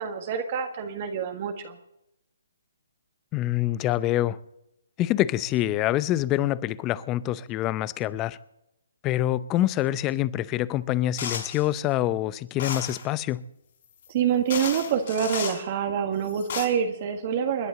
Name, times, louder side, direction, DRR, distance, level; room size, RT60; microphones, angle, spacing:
voice 1, 0.0-1.7 14.1-17.7, right 8 dB, 40° right, 1.6 m, -26 dB
voice 2, 3.3-4.4 5.0-8.4 9.0-13.4, left 14 dB, 20° left, 0.6 m, -26 dB
sound 1, 11.2-11.6 12.6-13.0 14.0-14.1 14.5-15.6 16.2-16.6, left 7 dB, 50° left, 5.3 m, -33 dB
29.5 x 11.0 x 3.9 m
figure-of-eight pair, 135°, 0 cm